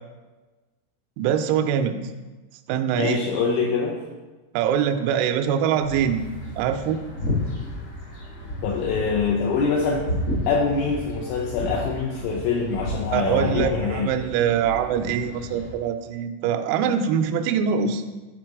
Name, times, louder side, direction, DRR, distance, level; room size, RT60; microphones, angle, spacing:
voice 1, 1.2-2.0 2.7-3.2 4.5-6.2 6.6-7.0 13.1-18.0, right 8 dB, 90° right, 7 dB, 3.3 m, -23 dB
voice 2, 2.9-4.0 8.6-10.1 10.5-14.2, left 5 dB, 80° left, -1 dB, 2.8 m, -24 dB
sound 1, 5.8-15.7, left 1 dB, 60° left, 1.2 m, -32 dB
10.0 x 3.8 x 4.7 m, 1.2 s
omnidirectional pair, 6.0 m